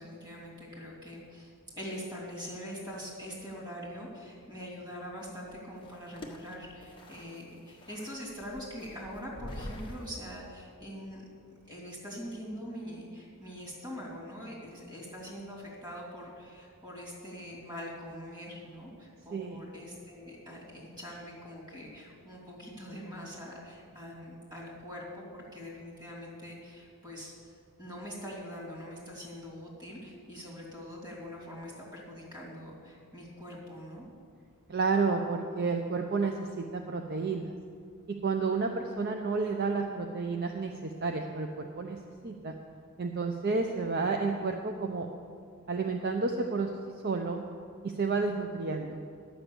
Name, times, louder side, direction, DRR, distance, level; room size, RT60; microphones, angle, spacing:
voice 1, 0.0-11.2 11.5-27.5 27.8-34.1, equal, 20° right, -4 dB, 2.9 m, -43 dB
sound 1, 5.2-10.2, left 1 dB, 20° left, 1.0 m, -46 dB
voice 2, 34.7-37.5 38.1-42.0 42.2-42.5 43.0-45.1 45.7-46.7 47.0-47.4 47.8-49.0, right 4 dB, 45° right, 4 dB, 0.5 m, -31 dB
11.0 x 6.1 x 8.1 m, 2.3 s
head